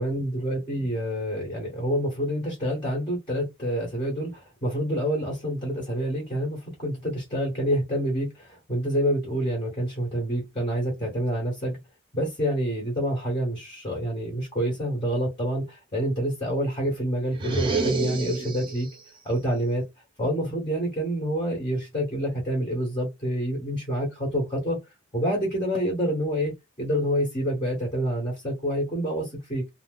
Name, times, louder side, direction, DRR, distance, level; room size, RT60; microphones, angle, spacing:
voice 1, 0.0-11.8 12.1-18.9 19.2-19.8 20.2-24.8 25.1-26.5 26.8-29.7, equal, 25° left, 1.2 m, -27 dB
sound 1, 17.3-19.0, right 3 dB, 25° right, 0.8 m, -28 dB
2.7 x 2.0 x 3.8 m
head